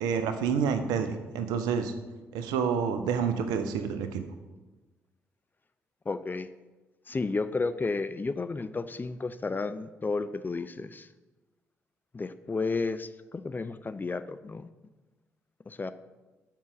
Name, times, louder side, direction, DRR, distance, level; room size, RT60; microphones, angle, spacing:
voice 1, 0.0-1.9 2.3-4.2, right 6 dB, 70° right, 8 dB, 0.7 m, -28 dB
voice 2, 6.1-6.5 7.1-11.1 12.1-14.7 15.7-15.9, left 3 dB, 25° left, 12 dB, 0.5 m, -32 dB
7.3 x 5.6 x 6.0 m, 1.2 s
figure-of-eight pair, 40°, 7 cm